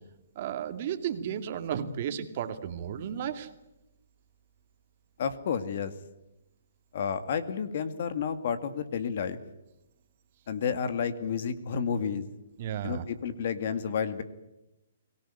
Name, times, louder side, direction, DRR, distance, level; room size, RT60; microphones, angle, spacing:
voice 1, 0.4-3.5 12.6-13.1, right 9 dB, 45° right, 8 dB, 2.3 m, -33 dB
voice 2, 5.2-5.9 6.9-9.4 10.5-12.2 12.8-14.2, left 7 dB, 55° left, 11 dB, 2.1 m, -31 dB
24.0 x 18.0 x 9.9 m, 0.93 s
hypercardioid pair, 150°, 0 cm